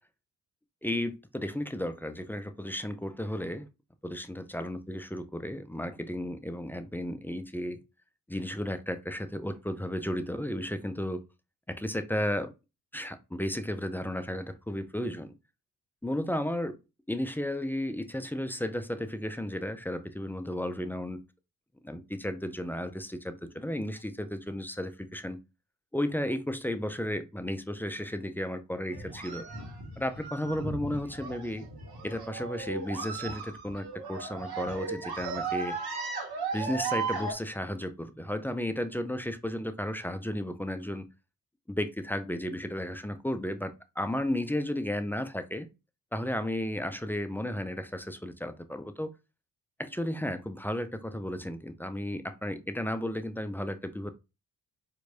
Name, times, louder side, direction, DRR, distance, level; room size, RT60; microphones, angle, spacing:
voice 1, 0.8-3.7 4.0-7.8 8.3-11.2 11.7-12.5 12.9-15.3 16.0-16.8 17.1-21.2 21.8-25.4 25.9-29.4 30.0-31.7 32.0-35.8 36.5-41.1 41.7-45.7 46.1-49.1 49.8-54.1, left 1 dB, 5° left, 0.4 m, -33 dB
sound 1, 28.9-37.3, right 4 dB, 55° right, 1.4 m, -36 dB
4.4 x 2.7 x 2.6 m
hypercardioid pair, 45°, 45 cm